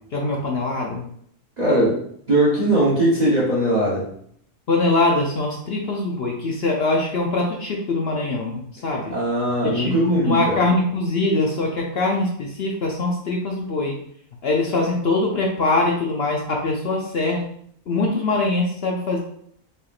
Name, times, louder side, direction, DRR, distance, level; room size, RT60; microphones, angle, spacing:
voice 1, 0.1-1.0 4.7-9.1 9.6-14.0 14.4-17.4 17.9-19.2, left 2 dB, 60° left, -1 dB, 0.7 m, -22 dB
voice 2, 1.6-2.0 2.3-4.1 9.1-10.6, right 1 dB, 35° right, -6 dB, 0.9 m, -20 dB
4.3 x 3.5 x 2.4 m, 0.67 s
omnidirectional pair, 1.6 m